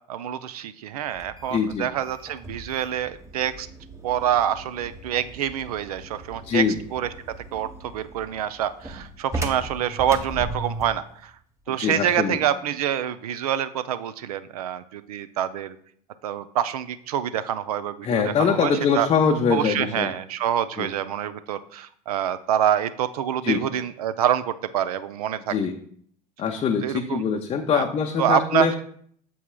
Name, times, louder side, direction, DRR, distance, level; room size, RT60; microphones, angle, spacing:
voice 1, 0.1-3.7 4.0-6.6 6.9-7.1 7.5-11.3 11.7-15.8 16.2-19.1 19.5-25.6 26.8-27.2 27.7-27.8 28.2-28.7, right 10 dB, 65° right, 14 dB, 0.4 m, -26 dB
sound 1, 1.1-11.0, right 2 dB, 15° right, 0.9 m, -38 dB
voice 2, 1.5-1.9 6.4-6.8 11.7-12.4 18.0-20.1 20.8-20.9 23.4-23.6 25.5-25.8 26.4-28.7, left 6 dB, 25° left, 2 dB, 0.6 m, -23 dB
8.3 x 7.0 x 2.2 m, 0.62 s
figure-of-eight pair, 75°, 21 cm